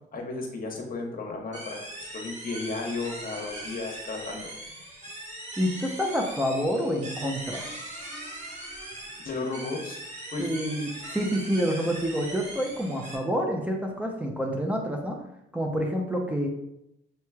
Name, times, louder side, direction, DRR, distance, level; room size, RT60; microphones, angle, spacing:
voice 1, 0.1-4.4 9.2-10.0 10.3-10.5, left 3 dB, 45° left, 1 dB, 1.1 m, -34 dB
sound 1, 1.5-13.2, right 1 dB, 35° right, 1.4 m, -40 dB
voice 2, 5.6-7.7 10.4-15.2 15.5-16.5, equal, 5° right, 0 dB, 0.6 m, -28 dB
6.5 x 3.0 x 2.3 m, 0.81 s
cardioid pair, 90°, 20 cm